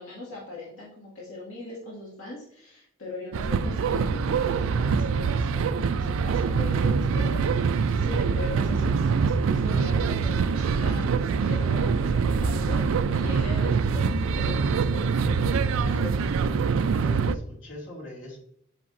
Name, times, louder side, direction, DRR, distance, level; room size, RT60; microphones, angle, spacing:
voice 1, 0.0-16.1, left 2 dB, 85° left, -5 dB, 2.1 m, -40 dB
sound 1, 3.3-17.4, right 5 dB, 75° right, 0.4 m, -24 dB
voice 2, 16.9-18.4, left 1 dB, 65° left, -3 dB, 2.6 m, -41 dB
8.6 x 5.1 x 2.6 m, 0.70 s
head